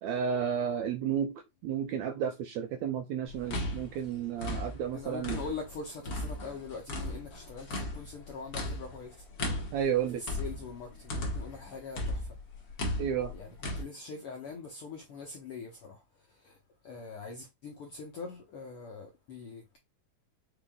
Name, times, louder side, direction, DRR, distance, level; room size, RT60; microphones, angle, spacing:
voice 1, 0.0-1.3 1.6-5.4 9.7-10.2 13.0-13.3, right 8 dB, 80° right, 1.6 m, -32 dB
sound 1, 3.3-5.7 6.0-11.6 11.9-13.8, left 1 dB, 60° left, 1.0 m, -36 dB
voice 2, 4.9-9.1 10.2-12.3 13.3-13.5 13.8-16.0 16.4-16.6 16.8-19.8, left 4 dB, 75° left, 1.3 m, -43 dB
5.8 x 3.6 x 2.3 m
omnidirectional pair, 3.7 m